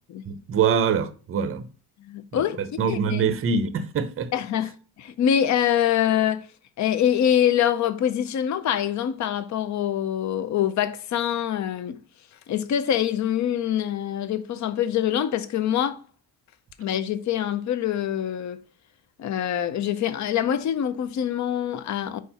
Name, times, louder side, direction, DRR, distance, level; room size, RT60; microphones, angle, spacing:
voice 1, 0.3-1.7 2.3-4.3, right 6 dB, 35° right, 0.6 m, -24 dB
voice 2, 2.0-2.6 2.9-3.2 4.3-4.7 5.0-6.5 6.8-12.0 12.5-16.0 16.8-18.6 19.2-22.2, left 10 dB, 45° left, 0.5 m, -24 dB
4.7 x 4.4 x 5.4 m
cardioid pair, 175°, 41 cm